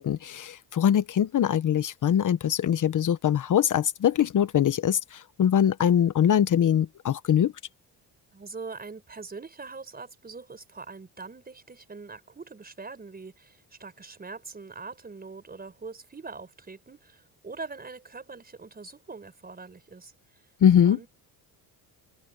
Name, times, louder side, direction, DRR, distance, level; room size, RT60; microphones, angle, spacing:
voice 1, 0.0-7.5 20.6-21.0, left 9 dB, 50° left, 1.1 m, -22 dB
voice 2, 8.3-20.1 20.9-21.1, right 4 dB, 20° right, 5.6 m, -42 dB
open air
cardioid pair, 115°, 41 cm